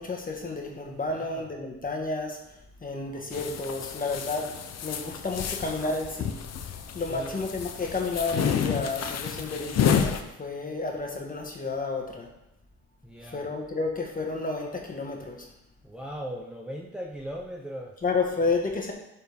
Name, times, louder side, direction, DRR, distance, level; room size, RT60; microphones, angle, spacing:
voice 1, 0.0-2.4 2.8-4.5 4.8-6.6 6.9-12.3 13.3-15.5 18.0-18.9, left 3 dB, 30° left, 1 dB, 1.7 m, -31 dB
voice 2, 1.1-1.5 7.1-7.4 13.0-13.5 15.8-18.0, equal, 5° right, -2 dB, 0.8 m, -38 dB
sound 1, 3.3-10.2, left 7 dB, 60° left, 0.8 m, -30 dB
11.5 x 4.5 x 3.6 m, 0.88 s
cardioid pair, 90°, 30 cm